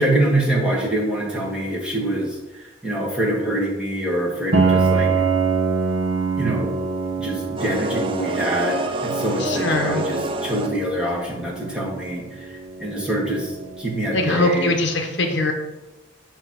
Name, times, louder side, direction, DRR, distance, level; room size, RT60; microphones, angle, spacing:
voice 1, 0.0-5.1 6.4-6.7 7.2-14.7, right 1 dB, 5° right, -4 dB, 1.4 m, -25 dB
Piano, 4.5-14.1, right 4 dB, 60° right, 0.8 m, -25 dB
sound 1, 7.6-11.0, right 1 dB, 25° right, 0.4 m, -27 dB
voice 2, 9.4-10.1 14.1-15.5, left 2 dB, 60° left, 4 dB, 0.8 m, -22 dB
7.9 x 2.9 x 6.1 m, 1.1 s
head